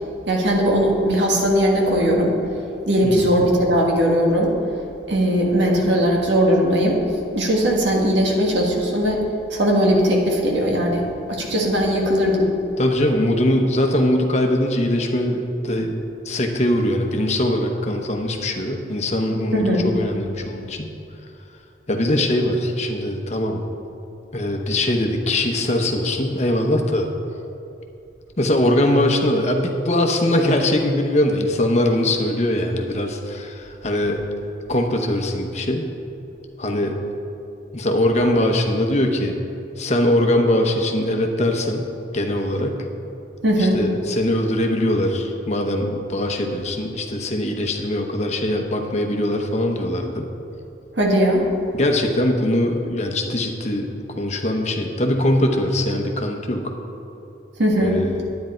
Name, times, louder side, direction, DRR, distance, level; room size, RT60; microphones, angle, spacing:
voice 1, 0.3-2.4 2.8-4.5 5.1-7.0 7.3-9.2 9.5-12.5 19.5-19.9 43.4-43.8 51.0-51.4 57.6-58.0, equal, 65° right, -1 dB, 1.7 m, -19 dB
voice 2, 3.0-3.3 12.8-16.0 16.2-20.9 21.9-23.6 24.3-27.1 28.4-34.2 34.7-35.9 36.6-37.0 37.7-39.3 39.8-41.9 42.1-42.8 43.6-50.3 51.7-56.7 57.8-58.2, left 1 dB, 35° left, 3 dB, 0.9 m, -21 dB
10.0 x 9.4 x 4.4 m, 2.9 s
head